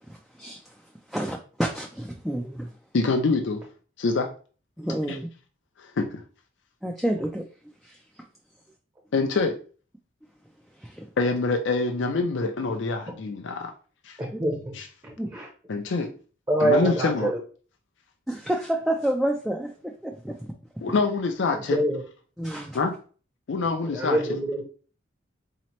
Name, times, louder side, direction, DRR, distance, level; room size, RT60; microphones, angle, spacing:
voice 1, 0.0-2.8 4.8-5.3 6.8-7.5 7.8-8.3 10.7-11.1 14.3-14.4 15.2-15.3 18.3-20.5 22.4-22.8, right 1 dB, ahead, 0.3 m, -30 dB
voice 2, 2.9-3.6 4.0-4.3 5.1-5.2 5.8-6.2 9.1-9.6 11.2-13.7 14.0-14.2 14.7-14.9 15.7-16.1 16.6-17.3 20.8-21.8 22.7-22.9 23.5-24.2, left 3 dB, 65° left, 0.4 m, -25 dB
voice 3, 14.2-14.7 15.0-15.5 16.5-17.4 21.5-22.0 23.8-24.6, right 1 dB, 20° right, 0.7 m, -25 dB
4.1 x 2.8 x 3.0 m
head